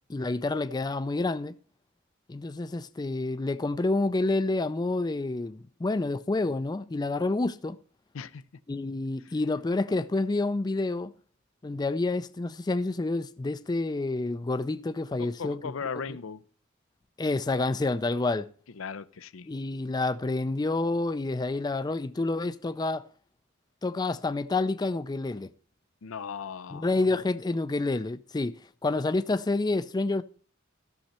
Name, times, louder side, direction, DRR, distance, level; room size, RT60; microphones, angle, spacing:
voice 1, 0.1-1.5 2.3-7.8 8.7-11.1 11.6-15.6 17.2-18.5 19.5-23.0 23.8-25.5 26.7-30.2, left 2 dB, 20° left, 0.4 m, -28 dB
voice 2, 15.2-16.4 18.8-19.5 26.0-26.9, left 6 dB, 80° left, 0.6 m, -37 dB
14.5 x 6.4 x 4.3 m
head